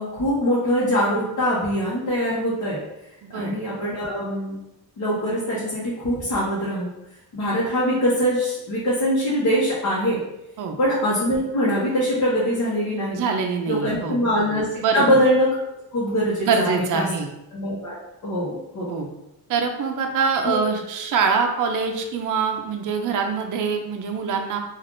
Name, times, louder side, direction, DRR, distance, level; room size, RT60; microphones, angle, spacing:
voice 1, 0.0-2.8 3.3-4.6 5.0-6.9 7.3-10.2 10.8-13.2 13.7-15.5 15.9-17.0 17.5-18.0 18.2-18.9 20.4-20.6, equal, 50° left, -7 dB, 0.9 m, -23 dB
voice 2, 3.2-3.5 10.6-10.8 13.1-14.2 14.8-15.2 16.4-17.3 18.9-19.1 19.5-24.6, right 5 dB, 55° right, 4 dB, 0.5 m, -24 dB
3.3 x 2.4 x 2.5 m, 0.89 s
wide cardioid pair, 135°, 38 cm